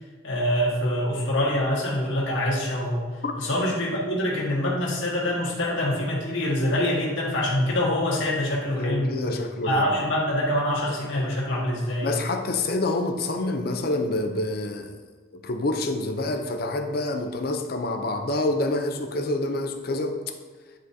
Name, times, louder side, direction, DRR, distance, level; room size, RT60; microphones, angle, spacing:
voice 1, 0.2-3.0 3.4-9.1 9.6-12.2, left 1 dB, 75° left, -4 dB, 1.6 m, -25 dB
voice 2, 8.8-10.0 12.0-15.0 15.3-20.2, left 2 dB, 50° left, 6 dB, 0.6 m, -27 dB
10.0 x 3.9 x 2.7 m, 1.4 s
head